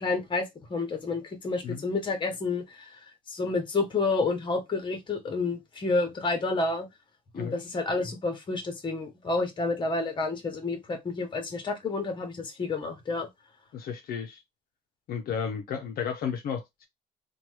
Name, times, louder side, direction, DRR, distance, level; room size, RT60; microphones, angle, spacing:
voice 1, 0.0-3.0 3.3-6.9 7.3-13.3, left 3 dB, 30° left, 1.0 m, -29 dB
voice 2, 13.7-14.4 15.1-16.9, left 7 dB, 60° left, 0.5 m, -33 dB
2.9 x 2.3 x 3.1 m
cardioid pair, 110°, 17 cm